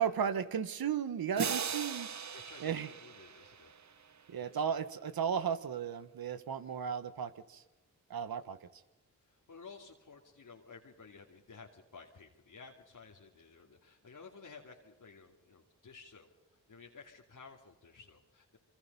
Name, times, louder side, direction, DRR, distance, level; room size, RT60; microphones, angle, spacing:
voice 1, 0.0-2.1 2.6-2.9 4.3-7.6 8.1-8.6, right 7 dB, 75° right, 13 dB, 1.4 m, -35 dB
sound 1, 1.4-4.2, right 6 dB, 50° right, 1.0 m, -39 dB
voice 2, 2.5-3.7 4.4-4.8 9.3-16.3 16.7-18.6, left 4 dB, 60° left, -1 dB, 2.7 m, -54 dB
26.5 x 23.5 x 5.6 m, 1.1 s
cardioid pair, 50°, 36 cm